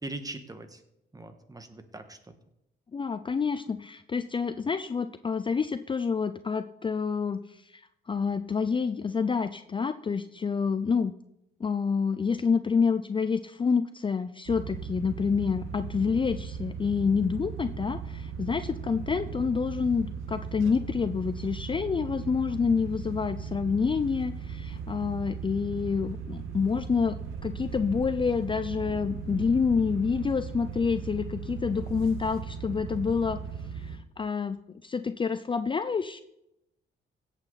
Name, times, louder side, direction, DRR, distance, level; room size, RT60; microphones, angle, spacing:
voice 1, 0.0-0.8 1.1-2.2, right 2 dB, 20° right, 8 dB, 1.5 m, -40 dB
voice 2, 2.9-11.1 11.6-27.2 27.4-33.4 33.7-36.2, left 5 dB, 25° left, 11 dB, 0.5 m, -28 dB
sound 1, 14.5-34.0, right 6 dB, 85° right, 1.1 m, -38 dB
16.0 x 8.3 x 4.1 m, 0.82 s
cardioid pair, 90°, 20 cm